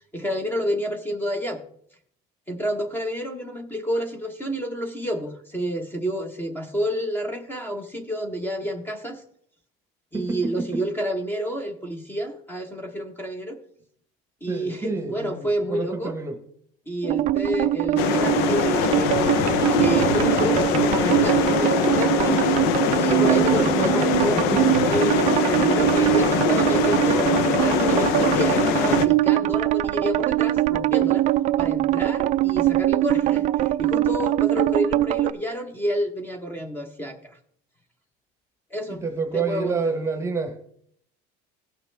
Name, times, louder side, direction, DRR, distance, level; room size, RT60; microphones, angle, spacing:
voice 1, 0.1-1.6 2.5-9.2 10.1-13.6 14.4-16.1 16.9-19.1 19.6-22.4 23.0-31.3 31.6-37.4 38.7-39.0 39.3-39.8, equal, 10° left, 5 dB, 1.1 m, -29 dB
voice 2, 10.1-10.8 14.5-16.4 23.2-23.9 24.3-24.6 38.9-40.6, right 4 dB, 15° right, 7 dB, 1.0 m, -28 dB
sound 1, 17.0-35.3, right 15 dB, 45° right, 0.4 m, -22 dB
sound 2, 18.0-29.1, left 8 dB, 70° left, 0.7 m, -23 dB
17.0 x 5.9 x 3.4 m, 0.65 s
cardioid pair, 155°, 17 cm